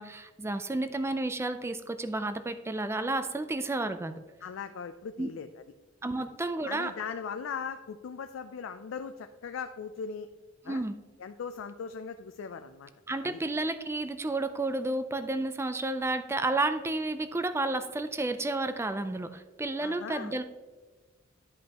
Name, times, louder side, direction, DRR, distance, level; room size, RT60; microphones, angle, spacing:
voice 1, 0.0-4.1 5.2-5.3 6.0-6.9 10.7-11.0 13.1-20.4, right 2 dB, 15° right, 10 dB, 0.4 m, -31 dB
voice 2, 4.4-5.5 6.2-6.3 6.7-10.3 10.7-10.8 11.2-12.9 13.2-13.4 19.8-20.3, left 6 dB, 70° left, 8 dB, 0.4 m, -39 dB
10.5 x 5.3 x 2.9 m, 1.2 s
head